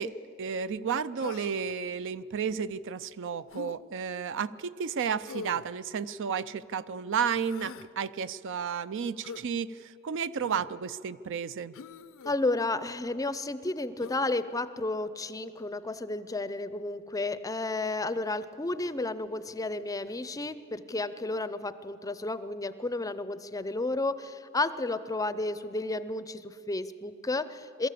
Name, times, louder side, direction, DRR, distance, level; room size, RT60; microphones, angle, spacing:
voice 1, 0.0-11.7, right 6 dB, 60° right, 15 dB, 0.4 m, -32 dB
Human voice, 1.2-1.7 3.5-3.8 5.3-5.7 7.3-7.9 9.2-9.5 10.4-10.7 11.7-12.4 14.0-14.2, left 5 dB, 65° left, 0.5 m, -43 dB
voice 2, 12.2-27.9, left 2 dB, 15° left, 14 dB, 0.5 m, -32 dB
22.5 x 13.5 x 8.4 m, 2.6 s
head